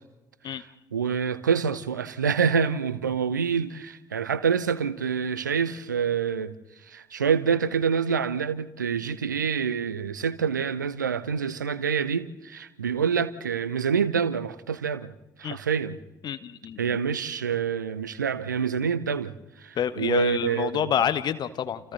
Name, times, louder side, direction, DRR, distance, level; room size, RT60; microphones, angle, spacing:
voice 1, 0.9-6.5 6.9-15.1 15.4-16.0 16.8-19.3 19.6-20.9, right 6 dB, 80° right, 0.7 m, -26 dB
voice 2, 16.2-17.0 19.7-21.9, left 9 dB, 45° left, 1.3 m, -28 dB
29.0 x 28.5 x 4.0 m
figure-of-eight pair, 45°, 10 cm